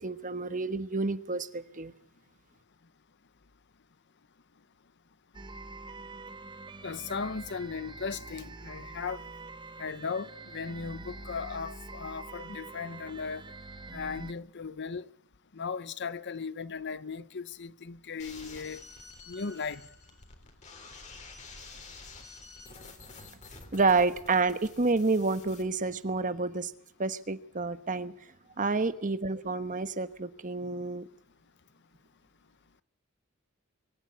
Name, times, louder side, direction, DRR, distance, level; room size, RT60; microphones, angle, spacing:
voice 1, 0.0-1.9 23.7-26.7 27.0-28.1 28.6-31.1, right 3 dB, 40° right, 1.2 m, -29 dB
sound 1, 5.3-14.3, right 3 dB, 20° right, 0.9 m, -45 dB
voice 2, 6.8-9.2 9.8-13.4 13.9-15.1 15.5-18.8 19.3-19.8, left 5 dB, 55° left, 0.8 m, -37 dB
sound 2, 18.2-25.6, left 3 dB, 35° left, 3.8 m, -49 dB
24.5 x 13.5 x 9.7 m
head